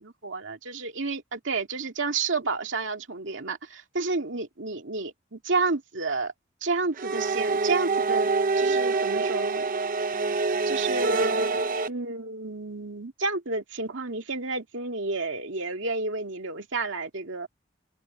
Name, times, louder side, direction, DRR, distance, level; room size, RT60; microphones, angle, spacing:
voice 1, 0.0-6.3 6.6-8.3 8.6-9.6 10.7-17.5, right 3 dB, 75° right, 2.3 m, -31 dB
sound 1, 7.0-11.9, right 3 dB, 45° right, 0.8 m, -25 dB
open air
head